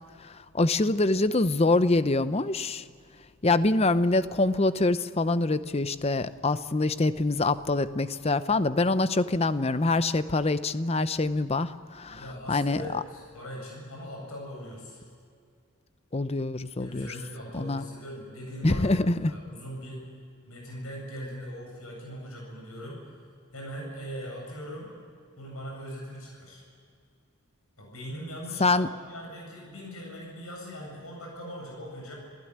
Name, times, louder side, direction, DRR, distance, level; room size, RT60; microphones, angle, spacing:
voice 1, 0.2-2.8 3.4-12.2 12.5-13.0 16.1-17.1 17.5-17.8 18.6-19.3 28.6-28.9, left 2 dB, 30° left, 13 dB, 0.7 m, -25 dB
voice 2, 12.1-15.0 16.8-20.0 20.5-23.0 23.5-24.9 25.4-26.6 27.8-32.1, equal, 80° left, -1 dB, 8.0 m, -40 dB
27.5 x 16.0 x 9.8 m, 2.2 s
head